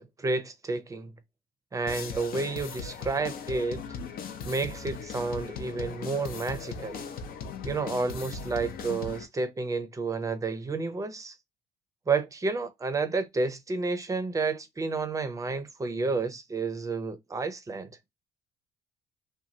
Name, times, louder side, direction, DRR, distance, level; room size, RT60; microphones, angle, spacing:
voice 1, 0.2-1.1 1.7-3.8 4.5-7.0 7.6-11.3 12.1-17.9, right 3 dB, 20° right, 0.6 m, -30 dB
sound 1, 1.9-9.3, left 5 dB, 65° left, 0.6 m, -38 dB
3.0 x 2.2 x 2.7 m
cardioid pair, 110°, 17 cm